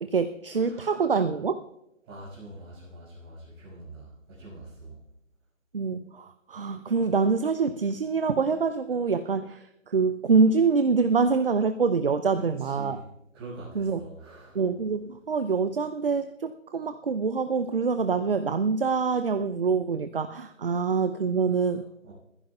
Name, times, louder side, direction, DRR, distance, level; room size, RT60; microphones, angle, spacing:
voice 1, 0.0-1.6 5.7-13.0 13.8-14.0 14.5-21.8, right 5 dB, 45° right, 11 dB, 0.7 m, -25 dB
voice 2, 0.6-1.4 2.0-5.0 12.3-13.1 13.3-14.7 21.5-21.8 22.0-22.1, right 2 dB, 20° right, -6 dB, 6.0 m, -45 dB
27.0 x 15.0 x 2.3 m, 0.84 s
figure-of-eight pair, 155°, 39 cm